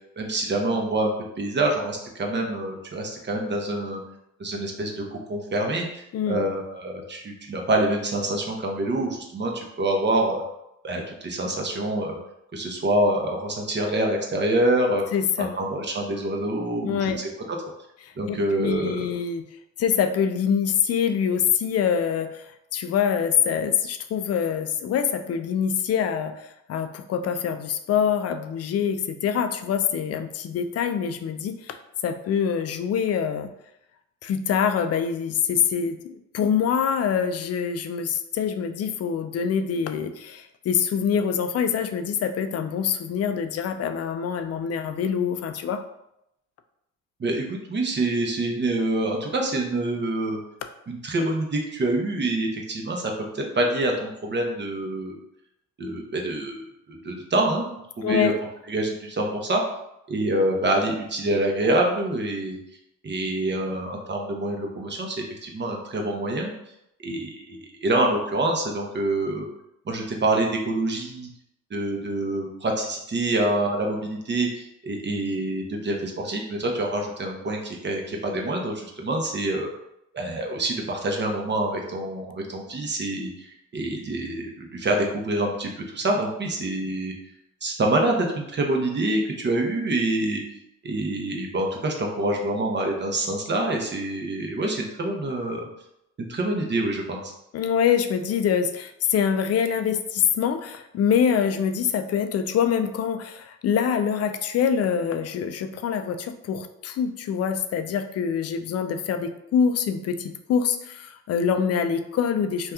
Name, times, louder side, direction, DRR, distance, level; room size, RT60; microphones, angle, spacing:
voice 1, 0.2-4.0 4.4-10.4 10.8-12.2 12.5-15.0 15.4-17.6 18.2-19.1 47.2-50.4 50.9-55.2 55.8-57.7 58.0-58.3 58.7-59.6 60.1-62.6 63.0-65.1 65.4-66.5 67.0-69.5 69.9-71.3 71.7-79.7 80.1-87.1 87.6-90.4 90.8-95.7 96.2-97.3, right 1 dB, 35° right, 1 dB, 0.7 m, -26 dB
voice 2, 15.1-15.6 16.8-17.2 18.0-19.4 19.8-22.4 22.7-31.8 32.0-33.5 34.2-45.8 58.0-58.4 97.5-112.7, left 7 dB, 50° left, 9 dB, 0.4 m, -25 dB
2.7 x 2.3 x 3.5 m, 0.82 s
cardioid pair, 75°, 32 cm